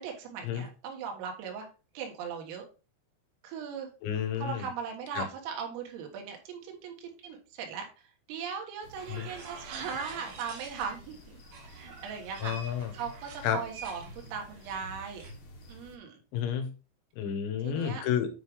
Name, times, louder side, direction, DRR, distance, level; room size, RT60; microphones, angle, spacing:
voice 1, 0.0-1.7 2.0-2.7 3.4-3.9 4.4-7.9 8.3-11.4 11.6-15.3 15.7-16.2 17.6-18.0, right 6 dB, 80° right, 2 dB, 4.1 m, -39 dB
voice 2, 4.0-4.7 5.1-5.2 9.1-9.3 12.4-12.9 13.4-13.6 16.3-16.7 17.2-18.3, left 8 dB, 90° left, 6 dB, 4.0 m, -30 dB
sound 1, 8.8-16.0, equal, 60° left, 2.5 m, -51 dB
sound 2, 9.0-11.1 11.4-15.3, right 4 dB, 65° right, 2.2 m, -47 dB
9.5 x 4.8 x 3.5 m, 0.34 s
omnidirectional pair, 5.9 m